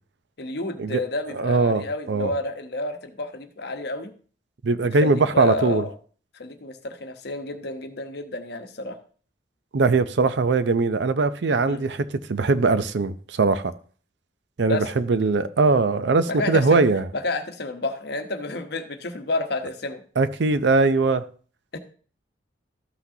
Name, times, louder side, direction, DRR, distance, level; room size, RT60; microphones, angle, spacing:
voice 1, 0.4-4.1 5.0-5.9 6.3-9.0 11.6-11.8 14.7-14.9 16.3-16.8 17.1-20.0 21.7-21.8, left 2 dB, 60° left, 1.0 m, -30 dB
voice 2, 1.3-2.3 4.6-5.8 9.7-13.7 14.6-17.1 20.2-21.2, right 3 dB, 70° right, 0.5 m, -21 dB
13.0 x 5.9 x 2.7 m
head